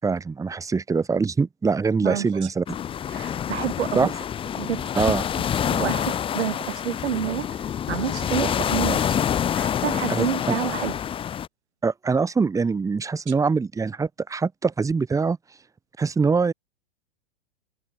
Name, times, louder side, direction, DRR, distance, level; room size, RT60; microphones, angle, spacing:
voice 1, 0.0-2.6 4.0-4.1 5.0-5.2 10.1-10.6 11.8-15.4 16.0-16.5, right 4 dB, 10° right, 5.2 m, -23 dB
voice 2, 2.0-2.5 3.1-4.1 4.6-9.2 9.5-11.0 13.3-13.4, right 9 dB, 85° right, 7.1 m, -29 dB
sound 1, 2.7-11.5, left 9 dB, 15° left, 1.4 m, -27 dB
hypercardioid pair, 145°, 33 cm